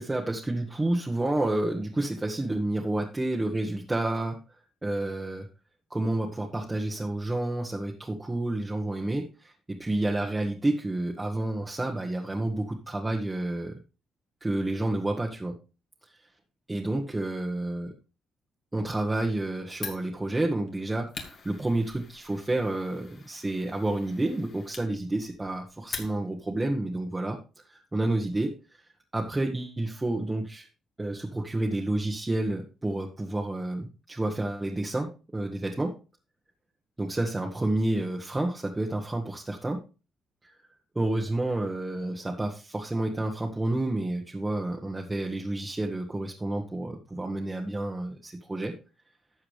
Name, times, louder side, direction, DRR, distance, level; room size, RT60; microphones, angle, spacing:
voice 1, 0.0-4.4 4.8-5.5 5.9-13.8 14.4-15.6 16.7-17.9 18.7-27.4 27.7-28.5 29.1-30.7 31.0-35.9 37.0-39.8 40.4-40.5 40.9-48.7, right 2 dB, 15° right, 0 dB, 1.5 m, -30 dB
Fire, 19.7-26.5, left 5 dB, 55° left, 2.3 m, -44 dB
13.0 x 7.4 x 3.4 m, 0.32 s
cardioid pair, 90°, 0 cm